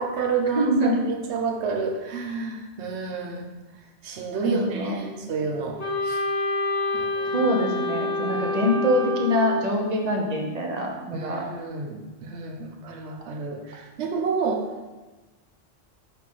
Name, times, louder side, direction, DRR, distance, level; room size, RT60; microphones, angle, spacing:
voice 1, 0.0-3.5 4.0-6.2 6.9-7.5 8.3-8.6 11.1-14.7, right 4 dB, 80° right, 2 dB, 1.1 m, -30 dB
voice 2, 0.5-1.0 4.4-4.9 7.3-11.5, equal, 40° right, 0 dB, 1.0 m, -24 dB
Wind instrument woodwind instrument, 5.8-9.8, left 2 dB, 90° left, 1.3 m, -27 dB
6.2 x 4.2 x 3.7 m, 1.2 s
omnidirectional pair, 1.1 m